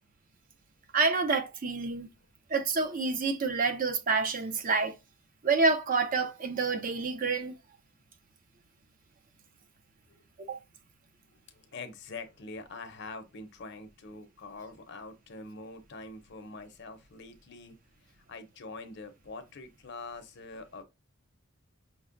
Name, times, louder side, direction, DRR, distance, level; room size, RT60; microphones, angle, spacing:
voice 1, 0.9-2.1 2.5-4.9 5.4-7.5 10.5-10.6, right 4 dB, 40° right, 0.5 m, -28 dB
voice 2, 11.5-17.7 18.3-20.8, left 3 dB, 55° left, 0.7 m, -44 dB
5.8 x 2.1 x 2.5 m
head